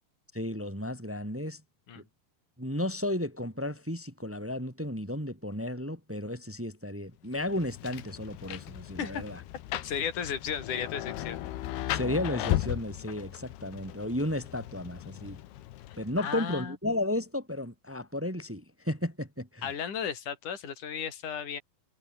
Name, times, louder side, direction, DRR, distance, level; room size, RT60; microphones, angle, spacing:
voice 1, 0.3-1.6 1.9-2.0 2.6-9.4 11.9-15.4 16.0-19.7, left 1 dB, 5° right, 1.1 m, -33 dB
Rain, 7.3-16.4, left 13 dB, 80° left, 3.3 m, -36 dB
voice 2, 9.8-11.4 15.9-16.8 19.6-21.6, left 7 dB, 50° left, 5.4 m, -35 dB
omnidirectional pair, 4.6 m